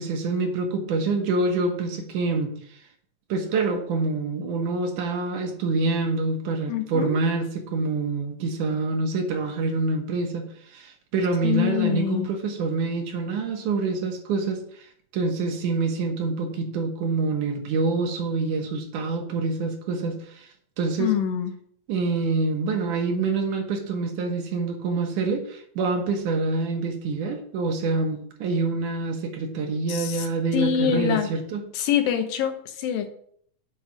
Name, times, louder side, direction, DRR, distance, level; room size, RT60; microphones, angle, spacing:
voice 1, 0.0-2.5 3.3-14.9 15.1-20.5 20.8-21.1 21.9-31.6, right 3 dB, 70° right, 3 dB, 2.5 m, -26 dB
voice 2, 6.7-7.2 11.4-12.3 21.0-21.5 29.9-31.3 31.7-33.1, left 9 dB, 85° left, 7 dB, 2.7 m, -25 dB
7.4 x 5.4 x 7.4 m, 0.63 s
omnidirectional pair, 4.0 m